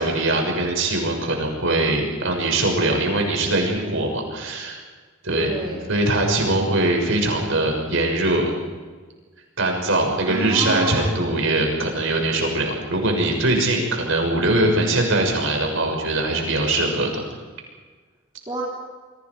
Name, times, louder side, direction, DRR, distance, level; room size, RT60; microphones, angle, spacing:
voice 1, 0.0-4.8 5.2-5.5 5.9-8.5 9.6-17.1, right 2 dB, 70° right, 2 dB, 6.5 m, -22 dB
voice 2, 5.3-5.9 10.3-11.3 18.5-18.6, right 1 dB, 25° right, -4 dB, 3.5 m, -29 dB
29.5 x 23.5 x 4.9 m, 1.4 s
head